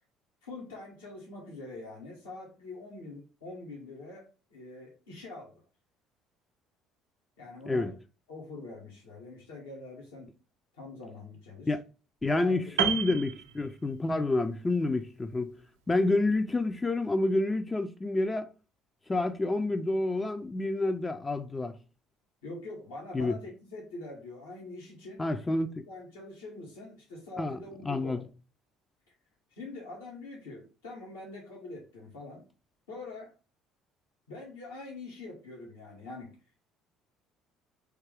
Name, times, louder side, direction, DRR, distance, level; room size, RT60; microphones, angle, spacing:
voice 1, 0.4-5.6 7.4-7.9 8.3-10.3 10.8-11.8 12.3-12.6 22.4-25.2 25.9-28.3 29.5-32.4 32.9-33.3 34.3-36.3, left 2 dB, 75° left, 1.3 m, -44 dB
voice 2, 12.2-15.5 15.9-18.5 19.1-21.8 23.1-23.4 25.2-25.9 27.4-28.2, left 2 dB, 20° left, 0.4 m, -29 dB
Piano, 12.8-14.2 14.5-14.7, right 10 dB, 75° right, 0.4 m, -31 dB
3.4 x 2.7 x 3.3 m
figure-of-eight pair, 55°, 0 cm